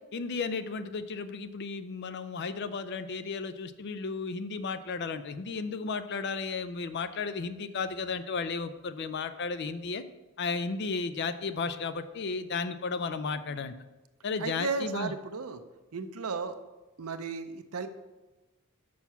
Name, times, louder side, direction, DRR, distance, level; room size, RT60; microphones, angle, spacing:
voice 1, 0.1-10.0 10.4-13.7 14.2-15.1, left 4 dB, 50° left, 12 dB, 0.4 m, -34 dB
voice 2, 14.4-15.6 15.9-16.6 17.0-17.9, right 4 dB, 75° right, 9 dB, 0.6 m, -34 dB
6.3 x 5.8 x 5.6 m, 1.1 s
head